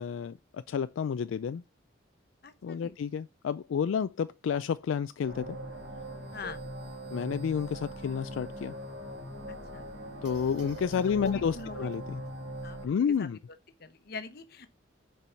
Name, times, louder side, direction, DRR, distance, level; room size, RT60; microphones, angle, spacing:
voice 1, 0.0-1.6 2.6-5.6 6.4-6.5 7.1-8.7 10.2-12.2 12.8-13.4, left 7 dB, 80° left, 0.3 m, -30 dB
voice 2, 2.4-3.0 6.3-6.6 9.5-9.9 11.1-11.9 12.6-13.3 13.8-14.7, left 3 dB, 50° left, 0.9 m, -43 dB
sound 1, 5.3-12.9, right 1 dB, 60° right, 2.1 m, -41 dB
6.8 x 4.7 x 5.7 m
head